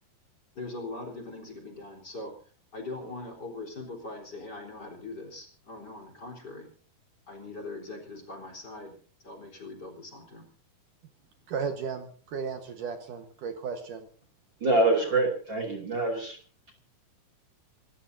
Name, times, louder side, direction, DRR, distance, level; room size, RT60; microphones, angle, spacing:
voice 1, 0.6-2.3 2.7-6.7 7.3-8.9 9.2-10.5, left 2 dB, 25° left, 4 dB, 3.9 m, -41 dB
voice 2, 11.5-14.1, right 5 dB, 65° right, 7 dB, 2.6 m, -35 dB
voice 3, 14.6-16.4, right 2 dB, 35° right, 3 dB, 2.8 m, -25 dB
27.5 x 14.0 x 2.7 m, 0.42 s
omnidirectional pair, 4.5 m